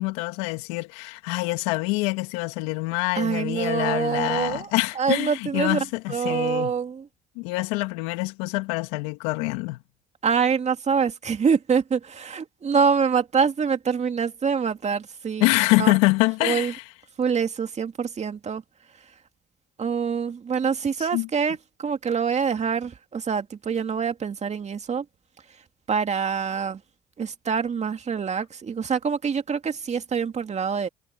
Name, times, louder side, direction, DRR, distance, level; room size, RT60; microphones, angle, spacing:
voice 1, 0.0-6.7 7.4-9.8 15.4-16.8 21.0-21.3, left 24 dB, 80° left, 2.2 m, -25 dB
voice 2, 3.1-5.8 6.1-7.1 10.2-15.5 15.8-16.0 16.4-16.7 17.2-18.6 19.8-25.0 25.9-26.8 27.2-30.9, right 6 dB, 40° right, 2.4 m, -25 dB
hypercardioid pair, 60°, 18 cm